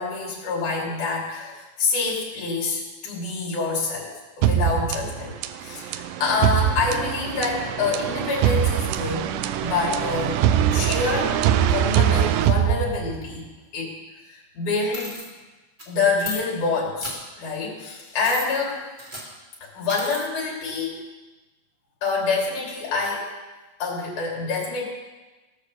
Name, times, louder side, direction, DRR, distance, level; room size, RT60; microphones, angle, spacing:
voice 1, 0.0-4.1 4.4-5.3 5.6-10.5 10.7-13.5 13.7-13.9 14.3-15.2 15.9-18.8 19.7-21.0 22.0-23.3 23.8-24.8, left 4 dB, 60° left, -4 dB, 4.5 m, -26 dB
sound 1, 4.4-13.4, right 10 dB, 80° right, 2.1 m, -23 dB
sound 2, 14.9-15.2 15.8-15.9 16.2-16.4 17.0-17.1 18.2-18.5 19.0-19.3 19.9-20.2, equal, 15° right, 2.0 m, -34 dB
18.0 x 6.4 x 6.8 m, 1.2 s
omnidirectional pair, 4.1 m